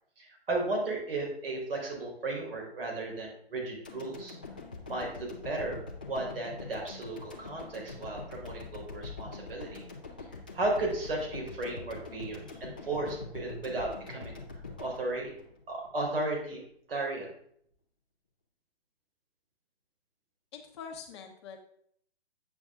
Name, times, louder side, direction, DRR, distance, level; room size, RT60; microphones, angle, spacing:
voice 1, 0.2-4.4 4.9-5.8 6.1-9.8 10.5-14.4 14.8-15.3 15.7-16.6 16.9-17.3, right 2 dB, 60° right, 0 dB, 3.7 m, -34 dB
sound 1, 3.8-16.1 16.4-16.5, left 3 dB, 10° left, 0.3 m, -44 dB
voice 2, 20.5-21.6, left 6 dB, 25° left, 3 dB, 0.9 m, -44 dB
9.3 x 7.0 x 3.5 m, 0.67 s
hypercardioid pair, 145°, 32 cm